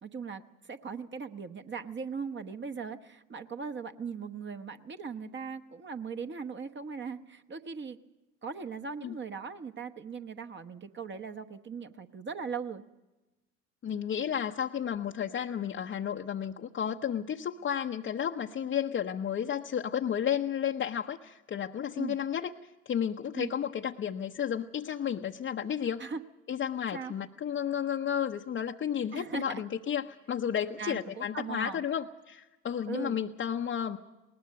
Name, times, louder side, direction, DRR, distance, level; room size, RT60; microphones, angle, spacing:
voice 1, 0.0-8.0 8.4-12.8 21.9-22.2 23.3-23.5 26.0-26.2 26.9-27.1 29.1-29.6 30.8-31.8 32.9-33.2, right 5 dB, 30° right, 9 dB, 1.1 m, -39 dB
voice 2, 13.8-22.5 22.9-26.0 26.5-34.0, left 8 dB, 30° left, 1 dB, 0.8 m, -32 dB
20.5 x 19.5 x 6.6 m, 1.1 s
hypercardioid pair, 65°, 39 cm